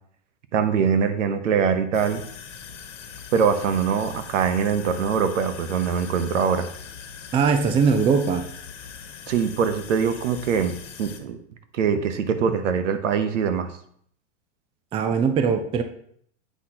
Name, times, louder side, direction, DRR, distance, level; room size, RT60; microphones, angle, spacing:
voice 1, 0.5-2.2 3.3-6.7 9.3-11.4 11.7-13.7, right 6 dB, 80° right, 10 dB, 1.0 m, -23 dB
sound 1, 1.9-11.2, left 7 dB, 80° left, 1.3 m, -41 dB
voice 2, 7.3-8.4 14.9-15.8, right 5 dB, 15° right, 8 dB, 0.4 m, -20 dB
8.3 x 5.8 x 2.9 m, 0.63 s
hypercardioid pair, 120°, 36 cm